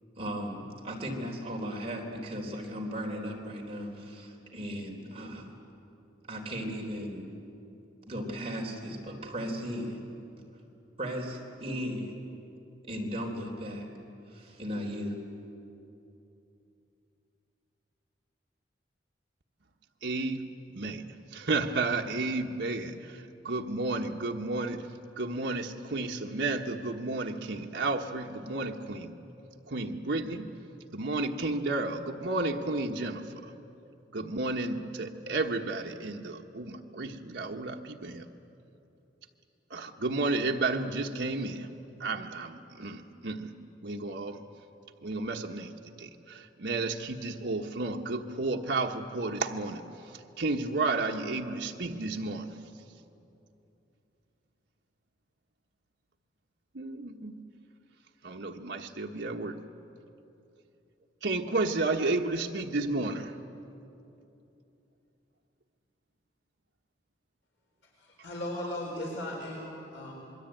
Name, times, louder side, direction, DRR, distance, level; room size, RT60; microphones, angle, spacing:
voice 1, 0.2-5.5 6.3-7.3 8.1-10.0 11.0-12.2 12.8-13.9 14.3-15.2, equal, 35° right, 0 dB, 3.7 m, -36 dB
voice 2, 20.0-20.4 20.7-21.1 21.3-24.9 25.2-29.1 29.7-30.5 30.9-33.5 34.1-38.3 39.7-41.7 42.0-43.5 43.8-44.4 45.0-52.6 56.7-57.3 58.2-59.6 61.2-63.4, right 3 dB, 80° right, 1 dB, 1.2 m, -32 dB
voice 3, 67.8-70.1, left 1 dB, 80° left, -2 dB, 4.4 m, -37 dB
26.5 x 22.0 x 9.0 m, 2.8 s
head